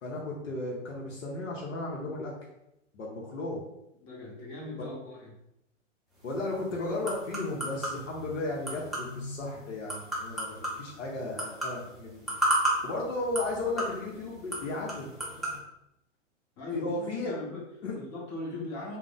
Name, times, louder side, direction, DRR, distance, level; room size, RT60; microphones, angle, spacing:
voice 1, 0.0-2.3 2.9-3.6 6.2-12.2 12.8-15.1 16.7-17.3 17.8-17.9, left 2 dB, 75° left, -3 dB, 0.9 m, -34 dB
voice 2, 4.0-5.3 16.6-17.6 17.9-19.0, left 2 dB, 35° left, -4 dB, 1.1 m, -39 dB
sound 1, 6.1-15.6, right 1 dB, ahead, 0.4 m, -35 dB
2.4 x 2.1 x 3.8 m, 0.84 s
hypercardioid pair, 115°, 38 cm